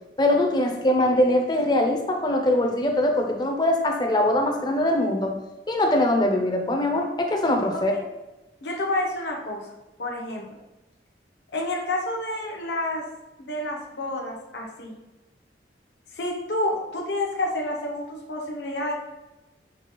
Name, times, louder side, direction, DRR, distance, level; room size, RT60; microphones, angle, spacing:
voice 1, 0.2-5.3 5.7-7.9, left 1 dB, 25° left, 3 dB, 0.5 m, -22 dB
voice 2, 8.6-9.7 10.0-10.5 11.5-13.0 13.4-14.9 16.1-18.9, left 1 dB, 75° left, 0 dB, 0.8 m, -29 dB
5.9 x 2.3 x 3.0 m, 1.0 s
head